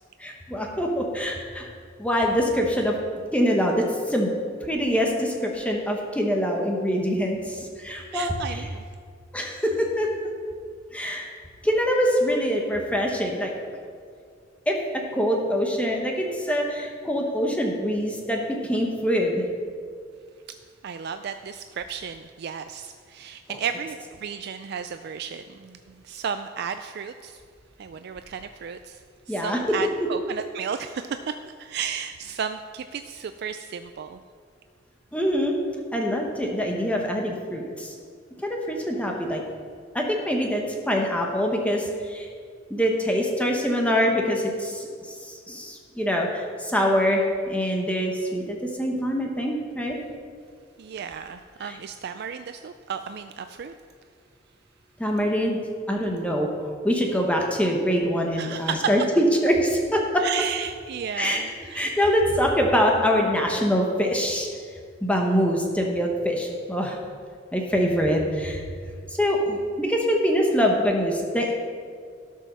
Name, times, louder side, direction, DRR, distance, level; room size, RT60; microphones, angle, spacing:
voice 1, 0.2-1.7 2.0-3.0 3.3-4.3 4.6-8.7 9.3-10.1 10.9-11.3 11.6-13.5 14.7-14.8 15.1-19.4 29.3-29.6 35.1-35.6 35.9-37.9 38.4-39.4 39.9-42.3 42.7-50.0 51.6-51.8 55.0-55.6 55.9-56.5 56.8-60.2 61.1-61.4 61.7-64.5 65.0-67.0 67.5-68.6 69.1-71.5, equal, 5° left, 0 dB, 1.0 m, -24 dB
voice 2, 8.1-8.8 20.8-27.4 27.8-31.3 31.6-34.2 50.8-53.7 58.4-58.9 60.2-61.9, right 7 dB, 60° right, 9 dB, 0.4 m, -33 dB
13.0 x 5.6 x 6.2 m, 2.1 s
head